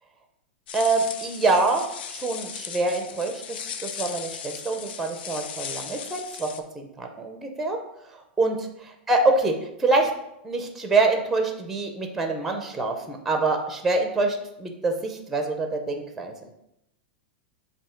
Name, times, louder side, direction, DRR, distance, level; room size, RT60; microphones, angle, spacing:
sound 1, 0.7-6.6, left 8 dB, 65° left, 0.6 m, -37 dB
voice 1, 0.7-1.8 2.1-6.5 6.7-7.8 8.1-9.5 9.8-10.1 10.4-16.5, right 3 dB, 5° right, 4 dB, 0.5 m, -25 dB
7.3 x 2.7 x 4.9 m, 0.81 s
supercardioid pair, 175°, 6 cm